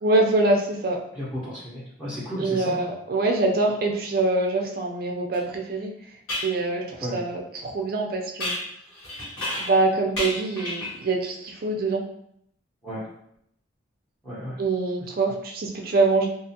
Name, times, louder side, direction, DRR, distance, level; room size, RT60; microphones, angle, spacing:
voice 1, 0.0-1.0 2.4-5.9 6.4-8.5 9.6-12.0 14.6-16.3, right 2 dB, 50° right, 1 dB, 0.4 m, -24 dB
voice 2, 1.1-2.8 7.0-7.2 12.8-13.1 14.2-14.6, equal, 5° left, -11 dB, 0.7 m, -33 dB
sound 1, 5.3-5.4 6.3-6.5 8.4-9.8 10.1-11.0, left 1 dB, 85° left, 1.1 m, -31 dB
2.5 x 2.3 x 2.7 m, 0.73 s
head